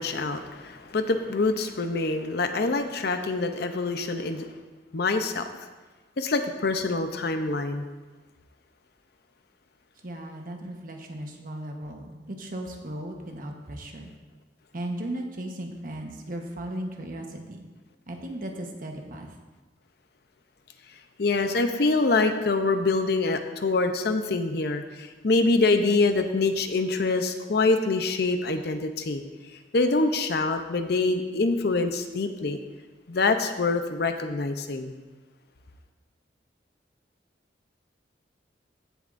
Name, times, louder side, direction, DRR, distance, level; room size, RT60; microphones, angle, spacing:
voice 1, 0.0-4.5 4.9-5.5 6.2-7.9 21.2-29.2 29.7-32.6 33.1-34.9, left 3 dB, 60° left, 7 dB, 0.7 m, -25 dB
voice 2, 10.0-14.1 14.7-17.6 18.1-19.3, right 1 dB, 50° right, 2 dB, 1.1 m, -36 dB
15.5 x 7.1 x 2.6 m, 1.3 s
head